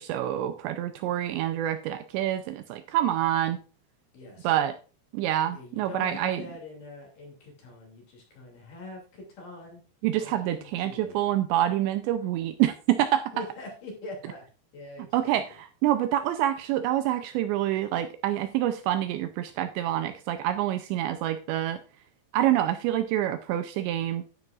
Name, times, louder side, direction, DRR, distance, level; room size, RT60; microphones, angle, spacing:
voice 1, 0.0-3.6 4.4-4.8 5.1-6.5 10.0-13.3 15.0-21.8 22.3-24.2, right 12 dB, 80° right, 9 dB, 2.6 m, -27 dB
voice 2, 4.1-4.5 5.5-9.8 10.2-11.2 13.3-14.4 14.7-15.4, left 2 dB, 50° left, 0 dB, 3.8 m, -43 dB
12.0 x 9.3 x 2.4 m, 0.37 s
omnidirectional pair, 5.5 m